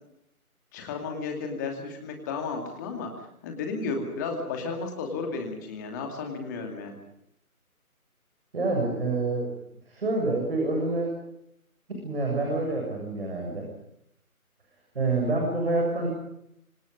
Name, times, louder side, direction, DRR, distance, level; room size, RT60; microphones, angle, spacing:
voice 1, 0.7-3.1 3.4-7.0, left 4 dB, 10° left, 3 dB, 2.5 m, -33 dB
voice 2, 8.5-9.5 9.9-11.2 12.0-13.7 14.9-16.1, right 2 dB, 40° right, 0 dB, 7.5 m, -27 dB
26.5 x 26.0 x 5.4 m, 0.77 s
figure-of-eight pair, 160°, 44 cm